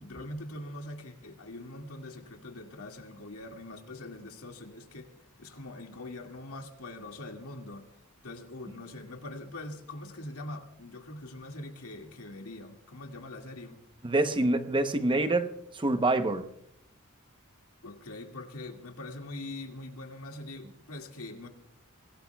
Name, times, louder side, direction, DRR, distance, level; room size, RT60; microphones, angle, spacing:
voice 1, 0.0-5.1 5.4-7.9 8.2-13.8 17.8-21.5, left 2 dB, 90° left, 2.0 m, -43 dB
voice 2, 14.0-16.5, right 2 dB, 25° right, 0.8 m, -26 dB
24.5 x 18.0 x 2.3 m
head